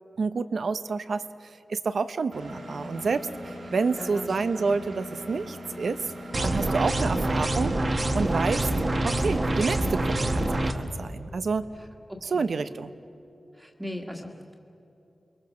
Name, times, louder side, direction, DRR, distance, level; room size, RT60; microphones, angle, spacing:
voice 1, 0.2-1.2 1.7-6.1 6.4-7.8 8.1-8.7 9.0-11.7 12.3-12.9, right 4 dB, 65° right, 12 dB, 0.8 m, -29 dB
Engine, 2.3-9.3, equal, 85° right, 4.9 m, -40 dB
voice 2, 3.6-4.7 11.8-12.5 13.5-14.6, left 1 dB, 5° right, 0 dB, 1.8 m, -40 dB
sound 1, 6.3-10.7, right 1 dB, 35° right, 1.4 m, -26 dB
29.0 x 22.5 x 6.3 m, 2.9 s
wide cardioid pair, 150°, 0 cm